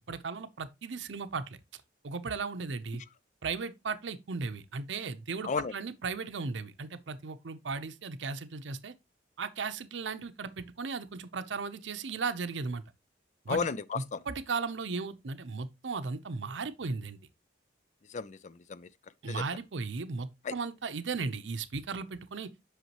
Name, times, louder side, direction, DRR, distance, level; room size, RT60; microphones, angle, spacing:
voice 1, 0.0-1.4 1.7-3.0 3.4-8.9 9.4-12.8 13.5-13.6 13.9-17.2 19.2-22.5, right 4 dB, 85° right, 0.7 m, -36 dB
voice 2, 13.5-14.2 18.1-18.9 19.3-19.4 20.4-20.5, left 5 dB, 40° left, 0.4 m, -33 dB
8.1 x 5.7 x 3.0 m
head